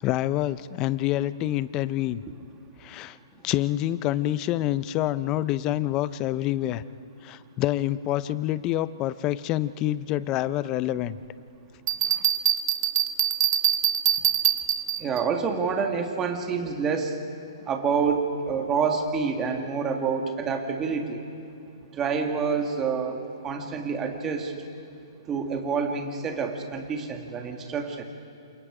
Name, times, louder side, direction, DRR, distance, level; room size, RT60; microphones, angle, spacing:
voice 1, 0.0-2.2 2.8-3.2 3.4-6.8 7.2-11.2 12.1-12.2, left 14 dB, 20° left, 16 dB, 0.4 m, -27 dB
Bell, 11.9-15.2, right 10 dB, 50° right, 1.1 m, -24 dB
voice 2, 15.0-17.1 17.7-21.2 21.9-23.2 23.4-24.5 25.3-28.0, right 5 dB, 15° right, 3 dB, 1.8 m, -27 dB
28.5 x 27.5 x 4.9 m, 2.6 s
hypercardioid pair, 165°, 3 cm